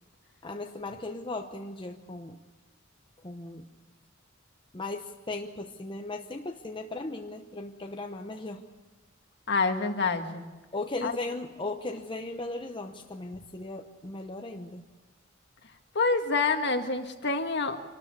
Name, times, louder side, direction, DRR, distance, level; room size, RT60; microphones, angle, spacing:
voice 1, 0.4-2.4 3.2-3.7 4.7-8.6 10.7-14.8, left 2 dB, 25° left, 4 dB, 0.9 m, -37 dB
voice 2, 9.5-10.5 11.0-11.1 15.9-17.9, left 4 dB, 55° left, 6 dB, 1.7 m, -27 dB
25.0 x 12.5 x 8.4 m, 1.2 s
head